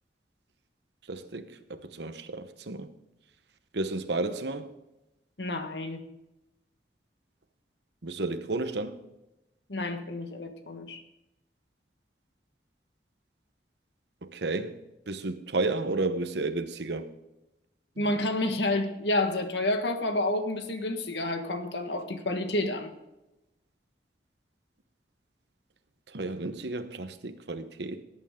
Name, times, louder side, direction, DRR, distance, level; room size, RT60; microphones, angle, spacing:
voice 1, 1.1-2.9 3.7-4.7 8.0-9.0 14.2-14.8 15.1-17.1 18.0-18.1 26.1-28.0, right 2 dB, 85° right, 1.0 m, -32 dB
voice 2, 5.4-6.0 9.7-11.0 18.0-22.9, left 2 dB, 85° left, 1.5 m, -29 dB
17.5 x 9.1 x 3.7 m
head